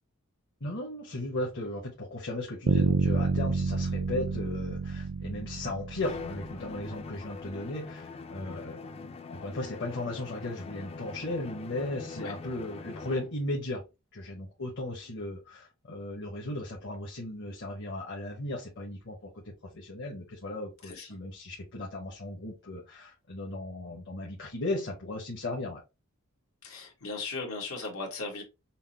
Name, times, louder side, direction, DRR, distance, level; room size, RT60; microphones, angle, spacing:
voice 1, 0.6-13.8 14.1-19.4 19.7-25.8, left 2 dB, 60° left, 1.0 m, -36 dB
Bass guitar, 2.7-6.6, right 4 dB, 60° right, 0.4 m, -29 dB
Bowed string instrument, 6.0-13.4, left 4 dB, 30° left, 0.3 m, -43 dB
voice 2, 26.6-28.4, left 3 dB, 90° left, 1.4 m, -37 dB
5.7 x 2.0 x 2.8 m
head